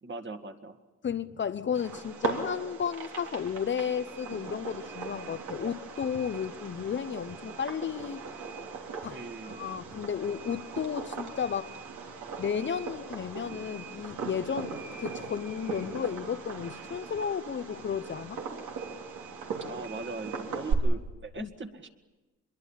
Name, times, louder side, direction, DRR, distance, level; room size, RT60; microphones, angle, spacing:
voice 1, 0.0-0.8 9.1-9.6 19.7-21.9, right 3 dB, 40° right, 2.1 m, -40 dB
voice 2, 1.0-8.2 9.0-9.2 9.4-11.8 12.4-14.7 15.0-18.4 21.4-21.5, left 7 dB, 40° left, 0.8 m, -33 dB
Fireworks, 1.7-20.7, right 5 dB, 75° right, 3.4 m, -39 dB
25.0 x 22.0 x 7.4 m
cardioid pair, 90°, 30 cm